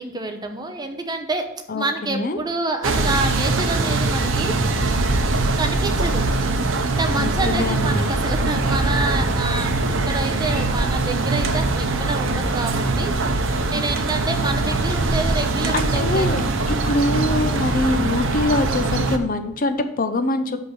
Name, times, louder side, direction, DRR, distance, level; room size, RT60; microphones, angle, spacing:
voice 1, 0.0-1.5 1.7-4.6 5.5-6.2 6.9-9.8 10.1-13.1 13.7-16.4, right 2 dB, 20° right, 5 dB, 0.8 m, -27 dB
voice 2, 1.7-2.4 7.2-8.1 15.7-16.4 16.7-20.6, left 2 dB, 45° left, 9 dB, 0.6 m, -24 dB
sound 1, 2.8-19.2, right 2 dB, 75° right, 0.8 m, -22 dB
6.4 x 5.3 x 6.0 m, 0.87 s
head